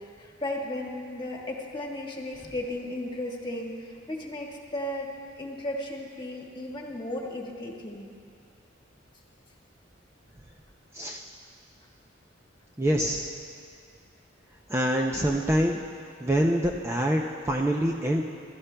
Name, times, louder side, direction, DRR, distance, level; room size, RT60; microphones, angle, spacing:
voice 1, 0.0-5.1 5.4-8.1, left 1 dB, 25° left, -1 dB, 1.5 m, -35 dB
voice 2, 12.8-13.3 14.7-15.8 16.2-18.2, equal, 15° right, 0 dB, 0.5 m, -25 dB
25.5 x 13.0 x 2.2 m, 2.3 s
head